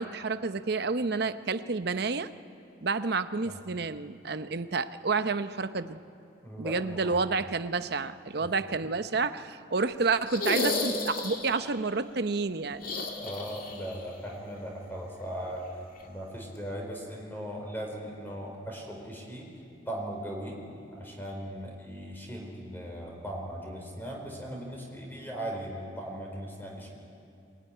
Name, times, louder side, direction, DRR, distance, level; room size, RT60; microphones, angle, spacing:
voice 1, 0.0-2.3 2.8-6.0 6.6-12.8, right 4 dB, 55° right, 11 dB, 0.7 m, -30 dB
voice 2, 6.4-7.2 8.4-8.5 13.2-15.7 16.0-19.5 19.9-20.6 20.9-26.9, equal, 10° left, 0 dB, 4.5 m, -38 dB
sound 1, 10.3-11.7 12.8-14.0 14.2-14.3 16.0-16.1, left 2 dB, 50° left, 2.2 m, -32 dB
22.5 x 20.0 x 10.0 m, 2.5 s
head